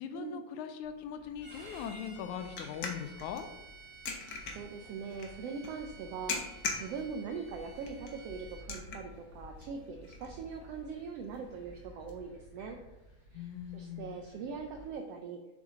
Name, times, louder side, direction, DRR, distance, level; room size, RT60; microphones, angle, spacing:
voice 1, 0.0-3.5 13.3-14.1, left 8 dB, 85° left, 8 dB, 2.0 m, -40 dB
sound 1, 0.8-12.1, left 4 dB, 65° left, 1.0 m, -44 dB
sound 2, 1.2-14.9, equal, 25° left, 1.0 m, -56 dB
Bowed string instrument, 1.4-8.7, right 4 dB, 20° right, 1.0 m, -54 dB
voice 2, 4.1-12.8 13.3-15.6, right 5 dB, 85° right, 4 dB, 1.4 m, -42 dB
7.3 x 6.2 x 3.7 m, 1.0 s
omnidirectional pair, 3.5 m